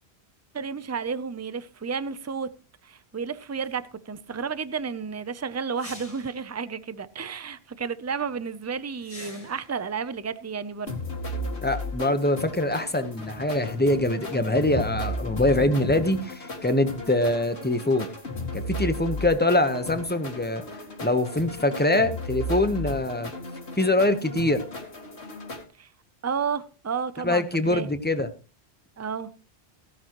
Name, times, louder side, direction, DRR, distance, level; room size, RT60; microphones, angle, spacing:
voice 1, 0.5-2.5 2.8-11.0 25.8-25.9 26.2-27.9 29.0-29.3, right 6 dB, 20° right, 0.4 m, -32 dB
sound 1, 3.6-3.7 5.8-6.4 9.0-9.8, left 2 dB, 35° left, 1.8 m, -44 dB
sound 2, 10.9-25.6, left 1 dB, 75° left, 2.6 m, -35 dB
voice 2, 11.6-18.1 18.5-20.6 21.0-23.3 23.8-24.6 27.2-28.3, left 1 dB, 10° left, 1.0 m, -24 dB
16.5 x 11.0 x 3.0 m
omnidirectional pair, 1.1 m